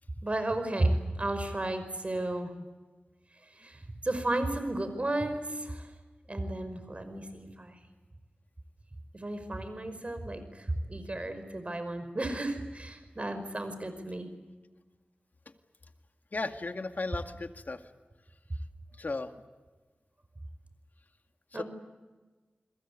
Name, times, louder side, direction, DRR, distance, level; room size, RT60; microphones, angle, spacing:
voice 1, 0.2-2.5 3.6-5.9 6.3-7.8 9.1-14.3 21.5-21.6, right 1 dB, 35° right, 9 dB, 5.3 m, -33 dB
voice 2, 16.3-17.8 19.0-19.3 21.5-21.6, left 3 dB, 55° left, 7 dB, 2.1 m, -35 dB
29.5 x 22.0 x 8.6 m, 1.3 s
wide cardioid pair, 55°, 3 cm